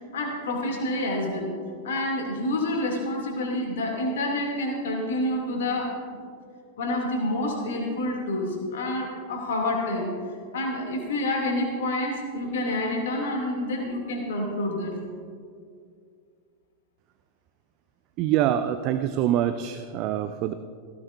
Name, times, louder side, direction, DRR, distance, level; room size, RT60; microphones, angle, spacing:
voice 1, 0.0-1.5 1.8-5.9 6.8-10.1 10.5-15.0, left 1 dB, 60° left, 0 dB, 2.8 m, -28 dB
voice 2, 18.2-20.5, right 11 dB, 40° right, 10 dB, 0.5 m, -25 dB
18.0 x 16.5 x 2.7 m, 2.2 s
figure-of-eight pair, 90°, 0 cm